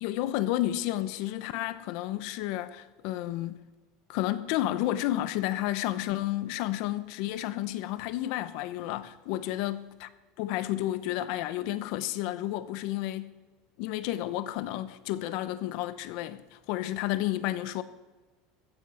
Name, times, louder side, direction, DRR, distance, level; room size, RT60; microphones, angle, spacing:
voice 1, 0.0-3.6 4.1-10.1 10.4-13.3 13.8-17.8, left 14 dB, 60° left, 0.8 m, -31 dB
15.5 x 14.5 x 5.7 m
supercardioid pair, 160°, 0 cm